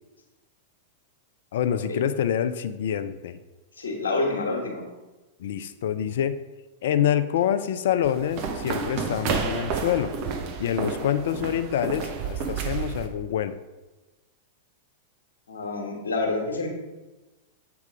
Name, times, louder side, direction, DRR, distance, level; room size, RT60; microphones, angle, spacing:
voice 1, 1.5-3.4 5.4-6.3 6.8-10.1 10.6-13.6, left 9 dB, 60° left, 11 dB, 0.4 m, -26 dB
voice 2, 3.8-4.8 15.5-16.7, left 3 dB, 80° left, 0 dB, 1.3 m, -28 dB
sound 1, 8.0-13.1, right 5 dB, 45° right, 0.8 m, -30 dB
7.6 x 3.5 x 5.0 m, 1.1 s
figure-of-eight pair, 95°, 0 cm